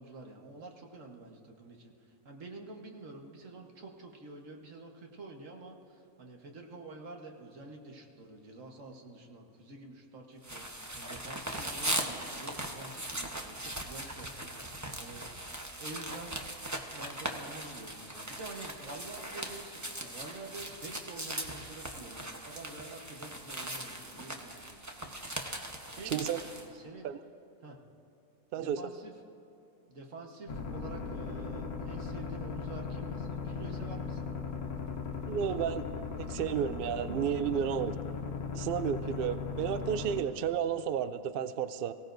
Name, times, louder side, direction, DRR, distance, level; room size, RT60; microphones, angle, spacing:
voice 1, 0.0-1.9 2.3-15.3 15.8-16.4 16.9-25.2 25.9-26.4 26.7-27.1 27.6-27.8 28.5-29.1 29.9-34.3, right 2 dB, 60° right, 1 dB, 1.7 m, -48 dB
sound 1, 10.4-26.7, right 1 dB, 15° right, 0.8 m, -39 dB
voice 2, 26.0-26.4 27.0-27.2 28.5-28.8 35.3-35.8 36.2-38.0 38.5-41.9, right 8 dB, 85° right, 13 dB, 0.5 m, -32 dB
sound 2, 30.5-40.2, left 5 dB, 85° left, 1.5 m, -38 dB
23.0 x 16.0 x 2.6 m, 2.9 s
omnidirectional pair, 1.5 m